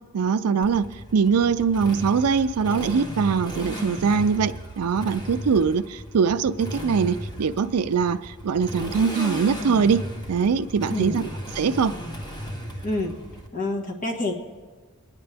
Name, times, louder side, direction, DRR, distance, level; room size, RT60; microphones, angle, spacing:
voice 1, 0.1-0.9 1.1-10.0 10.3-11.3 11.5-11.9, right 6 dB, 80° right, 10 dB, 0.4 m, -22 dB
Motorcycle, 0.6-13.5, equal, 20° left, 1.2 m, -35 dB
voice 2, 10.9-11.3 12.8-13.1 13.5-14.4, left 2 dB, 35° left, 1 dB, 1.5 m, -27 dB
22.5 x 9.8 x 3.4 m, 1.5 s
head